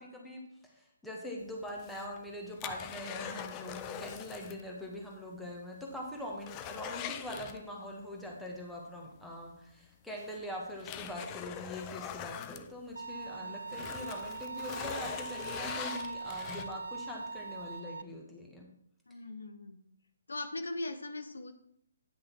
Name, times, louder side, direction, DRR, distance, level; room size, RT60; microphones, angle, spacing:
voice 1, 0.0-18.7, left 1 dB, 5° left, -2 dB, 1.8 m, -43 dB
sound 1, 1.7-4.7 4.9-5.0 5.5-5.6 6.0-8.0 9.4-9.5 10.2-13.3 13.6-17.0 17.5-17.6, left 9 dB, 20° left, 0.6 m, -43 dB
Bowed string instrument, 13.0-18.0, right 4 dB, 65° right, 0.4 m, -41 dB
voice 2, 13.1-13.9 19.1-19.8 20.3-21.5, left 2 dB, 65° left, 7 dB, 0.9 m, -41 dB
10.0 x 6.1 x 4.6 m, 0.72 s
figure-of-eight pair, 135°, 0 cm